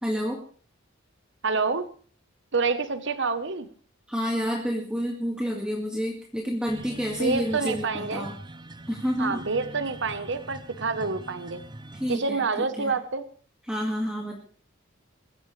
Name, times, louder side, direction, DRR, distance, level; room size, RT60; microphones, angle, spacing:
voice 1, 0.0-0.4 4.1-8.4 8.9-9.4 11.9-12.9 13.6-14.4, equal, 5° right, -1 dB, 2.0 m, -29 dB
voice 2, 1.4-1.8 2.5-3.7 7.2-8.3 9.2-11.6 12.1-13.2, right 4 dB, 65° right, 11 dB, 1.1 m, -27 dB
sound 1, 6.7-12.2, right 2 dB, 20° right, 0.6 m, -43 dB
23.0 x 15.0 x 3.3 m, 0.42 s
head